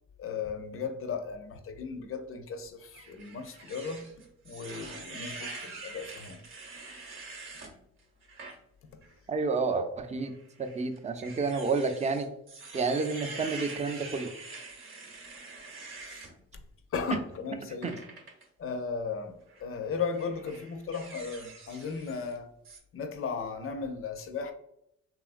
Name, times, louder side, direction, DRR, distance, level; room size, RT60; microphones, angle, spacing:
voice 1, 0.2-4.2 4.4-6.4 16.0-16.3 16.9-18.0 18.6-22.5 22.9-24.5, left 5 dB, 45° left, 0.5 m, -36 dB
sound 1, 2.9-7.7 8.2-8.6 9.0-9.1 10.2-16.3 17.8-18.4 19.4-19.6 20.1-22.4 22.6-22.8, right 3 dB, 40° right, 0.8 m, -45 dB
voice 2, 9.3-10.3 10.6-12.3 12.7-14.3 17.8-17.9, right 4 dB, 20° right, 0.4 m, -30 dB
2.9 x 2.4 x 2.4 m
supercardioid pair, 65°, 32 cm